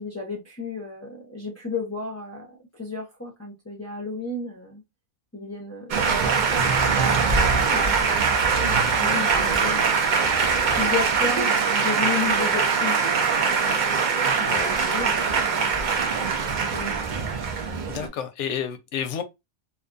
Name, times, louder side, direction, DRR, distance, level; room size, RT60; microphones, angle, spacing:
voice 1, 0.0-4.8 5.3-10.0 10.7-13.8 14.4-15.7 16.0-17.0, left 3 dB, 20° left, 0.5 m, -34 dB
Male speech man speaking, 5.9-18.1, right 5 dB, 65° right, 0.4 m, -22 dB
voice 2, 17.9-19.2, left 8 dB, 70° left, 0.8 m, -31 dB
2.5 x 2.2 x 2.4 m
omnidirectional pair, 1.4 m